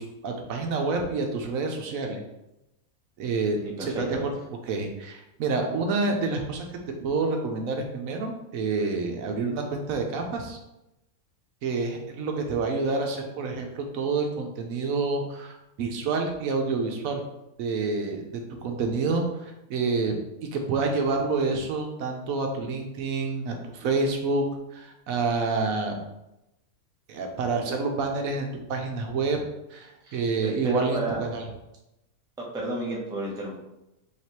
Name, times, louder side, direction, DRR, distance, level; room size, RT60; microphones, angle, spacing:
voice 1, 0.0-2.2 3.2-4.3 4.7-6.7 7.0-10.6 11.6-17.2 17.6-20.2 20.5-24.4 24.7-26.0 27.1-29.4 29.7-31.4, right 3 dB, 75° right, 3 dB, 1.0 m, -28 dB
voice 2, 3.6-4.2 30.0-31.2 32.4-33.6, right 2 dB, 5° right, -3 dB, 0.4 m, -32 dB
4.8 x 2.8 x 2.9 m, 0.92 s
omnidirectional pair, 1.5 m